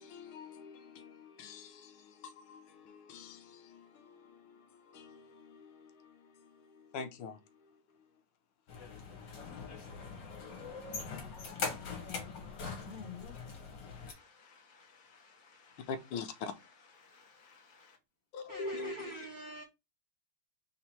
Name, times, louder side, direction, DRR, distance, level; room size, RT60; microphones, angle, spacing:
voice 1, 0.0-4.2 4.9-5.9 6.9-7.4 15.9-16.5 18.3-19.1, left 4 dB, 80° left, 1.5 m, -44 dB
sound 1, 8.7-14.1, left 5 dB, 60° left, 1.8 m, -42 dB
voice 2, 12.8-18.0, left 7 dB, 30° left, 0.9 m, -55 dB
voice 3, 18.5-19.6, right 1 dB, 85° right, 0.5 m, -45 dB
4.1 x 2.8 x 4.3 m
omnidirectional pair, 2.3 m